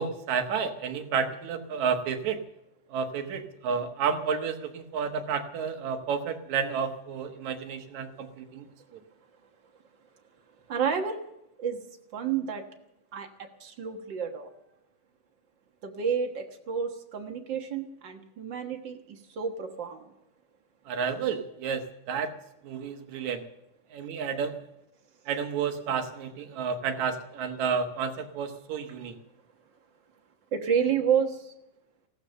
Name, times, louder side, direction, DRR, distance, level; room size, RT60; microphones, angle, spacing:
voice 1, 0.0-2.4 2.9-8.7 8.9-9.0 20.9-22.3 22.6-23.4 23.9-24.6 25.3-29.2, right 6 dB, 70° right, 7 dB, 2.5 m, -31 dB
voice 2, 10.7-11.2 11.6-11.8 12.1-12.6 13.1-14.5 15.8-20.1 30.5-31.5, right 7 dB, 50° right, 5 dB, 1.5 m, -30 dB
16.0 x 13.0 x 6.8 m, 0.87 s
omnidirectional pair, 3.6 m